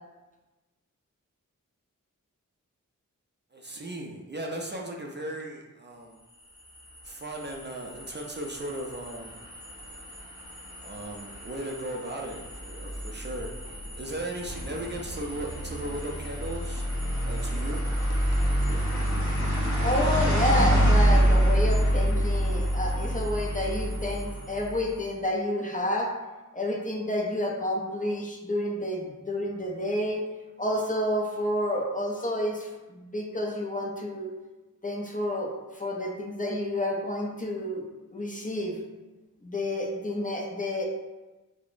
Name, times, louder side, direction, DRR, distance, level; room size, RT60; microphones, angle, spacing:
voice 1, 3.5-6.2 7.0-9.4 10.8-16.9 17.3-17.9 18.3-18.4 18.7-18.8, right 1 dB, 35° right, 0 dB, 0.4 m, -37 dB
sound 1, 6.4-24.9, equal, 55° left, 1.4 m, -27 dB
voice 2, 19.8-26.1 26.5-30.2 30.6-32.7 33.0-34.3 34.8-37.8 38.1-38.7 39.4-40.8, left 1 dB, 25° left, -1 dB, 0.4 m, -29 dB
4.7 x 2.0 x 2.5 m, 1.1 s
wide cardioid pair, 80°, 32 cm